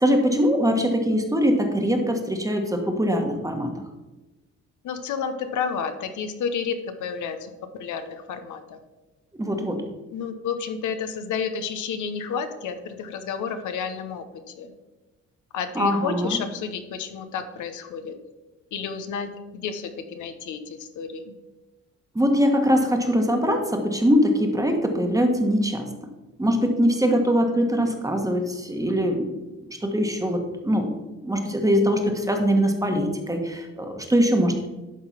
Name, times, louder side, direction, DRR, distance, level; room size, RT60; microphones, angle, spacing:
voice 1, 0.0-3.7 9.4-9.8 15.7-16.4 22.1-25.9 26.4-30.9 31.2-34.7, equal, 10° right, 4 dB, 1.3 m, -22 dB
voice 2, 4.8-8.8 10.1-14.2 14.6-14.7 15.5-18.2 18.7-21.3, left 6 dB, 75° left, 8 dB, 1.0 m, -31 dB
11.0 x 3.9 x 5.8 m, 1.1 s
cardioid pair, 90°, 30 cm